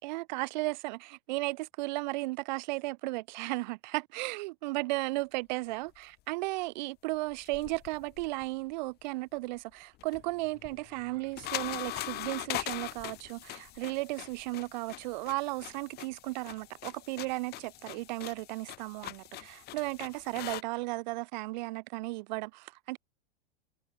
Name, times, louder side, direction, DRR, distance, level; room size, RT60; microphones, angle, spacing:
voice 1, 0.0-23.0, right 22 dB, 45° right, 2.5 m, -35 dB
sound 1, 7.3-8.7 9.9-20.6, left 17 dB, 30° left, 2.7 m, -42 dB
figure-of-eight pair, 95°, 30 cm